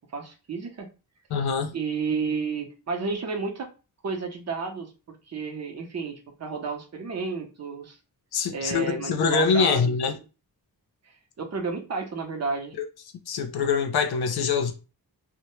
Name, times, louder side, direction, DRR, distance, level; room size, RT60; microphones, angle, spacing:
voice 1, 0.1-0.9 1.7-3.7 4.0-8.0 8.5-9.8 11.4-12.7, right 4 dB, 45° right, 0.7 m, -31 dB
voice 2, 1.3-1.7 8.3-10.2 12.8-12.9 13.3-14.7, left 5 dB, 85° left, 0.5 m, -24 dB
2.1 x 2.1 x 2.9 m
wide cardioid pair, 100°, 37 cm